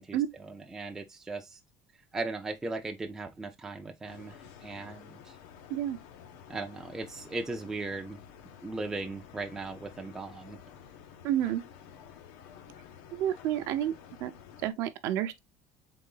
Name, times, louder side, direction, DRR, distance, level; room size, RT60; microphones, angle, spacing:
voice 1, 0.0-1.6 2.1-5.4 6.5-8.2 8.6-10.6, right 3 dB, 10° right, 0.4 m, -38 dB
sound 1, 4.0-14.7, left 8 dB, 75° left, 0.8 m, -51 dB
voice 2, 11.2-11.6 13.1-13.9 14.2-14.3 14.6-15.4, right 11 dB, 50° right, 0.6 m, -29 dB
3.8 x 3.6 x 3.7 m
cardioid pair, 175°, 6 cm